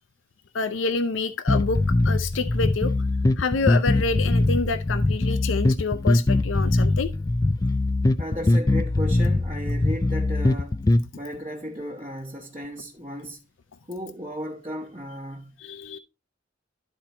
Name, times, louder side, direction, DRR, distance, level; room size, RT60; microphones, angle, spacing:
voice 1, 0.5-1.8 2.0-2.9 3.4-7.1 15.6-16.0, left 4 dB, 90° left, 0.6 m, -27 dB
sound 1, 1.5-11.0, left 2 dB, 20° left, 0.3 m, -22 dB
voice 2, 8.2-10.8 11.1-13.4 13.9-15.6, equal, 30° right, 1.1 m, -35 dB
12.0 x 4.4 x 2.9 m
head